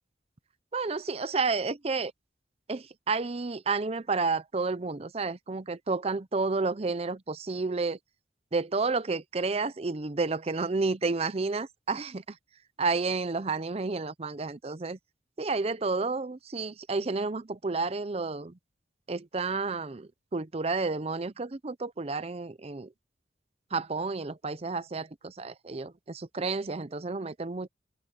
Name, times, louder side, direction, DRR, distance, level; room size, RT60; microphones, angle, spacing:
voice 1, 0.7-2.1 2.7-8.0 8.5-12.4 12.8-15.0 15.4-18.6 19.1-22.9 23.7-27.7, right 3 dB, 35° right, 0.6 m, -31 dB
open air
head